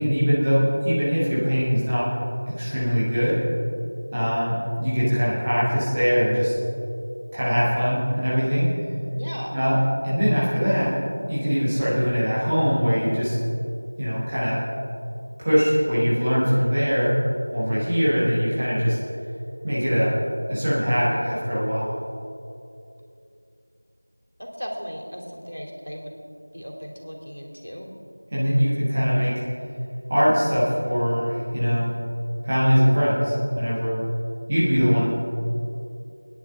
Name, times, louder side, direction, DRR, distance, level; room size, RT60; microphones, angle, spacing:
voice 1, 0.0-2.1 2.5-3.4 4.1-6.5 7.3-8.7 9.5-9.8 10.0-10.9 11.3-13.4 14.0-14.6 15.4-17.1 17.5-19.0 19.6-20.2 20.5-22.0 28.3-29.4 30.1-31.9 32.4-34.0 34.5-35.1, equal, 10° right, -10 dB, 1.1 m, -22 dB
voice 2, 9.1-9.6 24.4-26.2 26.5-27.9, equal, 85° left, 0 dB, 3.0 m, -36 dB
25.0 x 10.0 x 3.7 m, 2.7 s
figure-of-eight pair, 180°, 0 cm